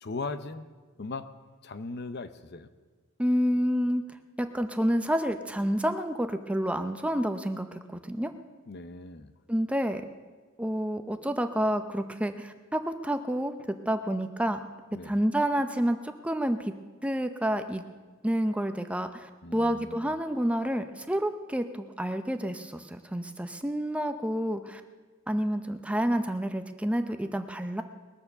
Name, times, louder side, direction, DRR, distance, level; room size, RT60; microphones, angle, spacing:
voice 1, 0.0-0.7 1.0-1.3 1.6-2.7 8.7-9.3 14.9-15.2 19.4-20.1, left 3 dB, 50° left, 11 dB, 0.7 m, -38 dB
voice 2, 3.2-4.0 4.4-8.3 9.5-10.0 10.6-13.5 13.9-14.6 15.0-16.7 17.0-17.8 18.2-24.8 25.3-27.8, equal, 5° right, 8 dB, 0.6 m, -29 dB
21.0 x 7.1 x 6.7 m, 1.4 s
head